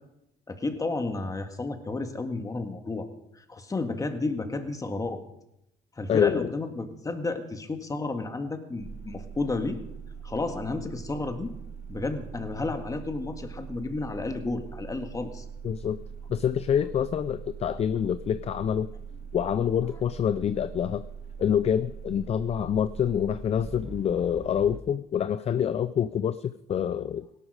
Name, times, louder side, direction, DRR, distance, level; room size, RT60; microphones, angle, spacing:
voice 1, 0.5-3.1 3.4-5.2 6.0-9.8 10.2-11.5 11.9-15.5, left 3 dB, 20° left, 7 dB, 1.8 m, -32 dB
voice 2, 6.1-6.5 15.6-16.0 16.3-18.9 19.3-21.0 21.4-27.4, left 8 dB, 40° left, 14 dB, 0.4 m, -26 dB
sound 1, 8.8-24.8, right 6 dB, 40° right, 1.9 m, -42 dB
17.0 x 12.0 x 4.9 m, 0.82 s
cardioid pair, 110°, 17 cm